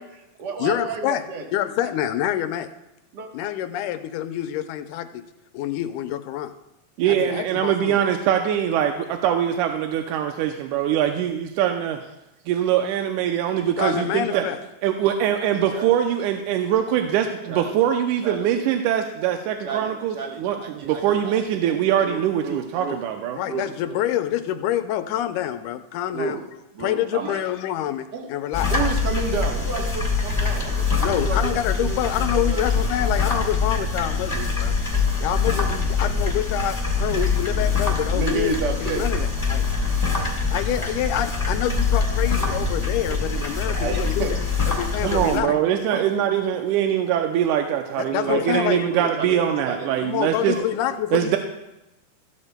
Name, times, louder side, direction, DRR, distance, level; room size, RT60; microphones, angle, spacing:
voice 1, 0.0-1.4 3.1-3.3 13.8-14.5 15.7-15.9 17.5-17.8 18.2-18.5 19.6-21.3 22.0-23.0 23.4-24.0 26.1-26.4 26.7-27.4 28.1-28.3 28.7-31.5 31.8-32.0 32.3-32.6 38.1-39.0 43.4-44.3 45.0-45.1 45.9-46.0 48.0-50.0 50.5-51.0, right 4 dB, 55° right, 2 dB, 1.1 m, -31 dB
voice 2, 0.6-1.3 1.5-2.7 3.3-5.2 5.5-6.5 7.1-8.0 13.6-14.6 23.3-26.4 26.8-28.7 31.0-34.7 35.2-38.5 38.8-39.7 40.5-44.4 44.7-45.6 48.0-48.9 50.0-51.4, left 12 dB, 90° left, 9 dB, 2.1 m, -27 dB
voice 3, 7.0-12.0 12.5-14.5 14.8-23.4 45.0-50.6 51.1-51.4, right 10 dB, 85° right, 5 dB, 2.1 m, -23 dB
sound 1, 28.5-45.4, left 4 dB, 20° left, 0.8 m, -24 dB
15.0 x 12.0 x 2.2 m, 0.93 s
omnidirectional pair, 3.6 m